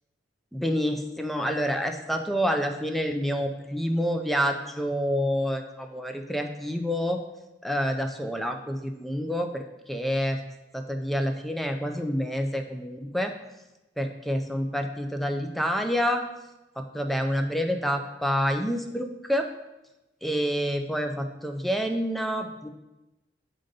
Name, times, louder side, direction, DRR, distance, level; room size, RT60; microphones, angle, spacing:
voice 1, 0.5-7.2 7.6-9.6 9.9-10.4 10.7-13.3 14.0-16.2 16.8-19.5 20.2-22.7, equal, ahead, 5 dB, 0.4 m, -28 dB
6.7 x 3.8 x 5.3 m, 1.0 s
head